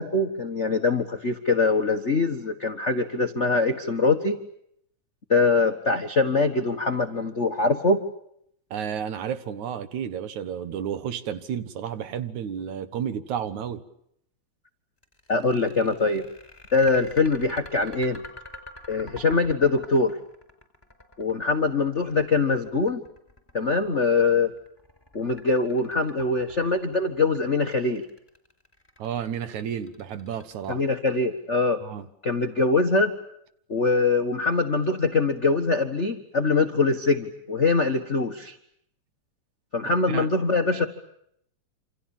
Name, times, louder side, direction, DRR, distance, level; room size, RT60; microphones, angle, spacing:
voice 1, 0.0-4.4 5.3-8.0 15.3-16.3 16.7-18.2 18.9-20.2 21.2-23.0 23.5-24.5 25.1-28.0 30.7-31.8 32.2-33.1 33.7-38.6 39.7-40.8, left 3 dB, 45° left, 0.9 m, -23 dB
voice 2, 8.7-13.8 29.0-30.8 31.8-32.1 40.1-40.3, right 8 dB, 70° right, 2.6 m, -31 dB
sound 1, 15.0-31.2, left 1 dB, 5° left, 4.3 m, -47 dB
27.5 x 27.5 x 7.3 m
omnidirectional pair, 3.7 m